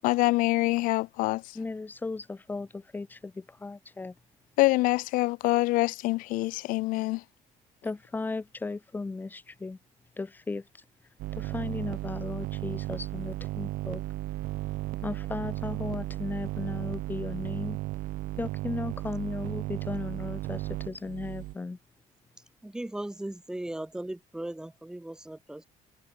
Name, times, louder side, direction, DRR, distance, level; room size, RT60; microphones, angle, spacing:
voice 1, 0.0-1.4 4.6-7.2, left 20 dB, 80° left, 0.5 m, -25 dB
voice 2, 1.5-4.1 7.8-9.8 10.2-10.6 11.3-14.0 15.0-17.8 18.4-21.8, left 3 dB, 15° left, 4.5 m, -36 dB
sound 1, 11.2-21.5, right 19 dB, 85° right, 1.7 m, -35 dB
voice 3, 22.6-25.7, right 1 dB, 5° right, 5.8 m, -37 dB
cardioid pair, 175°, 14 cm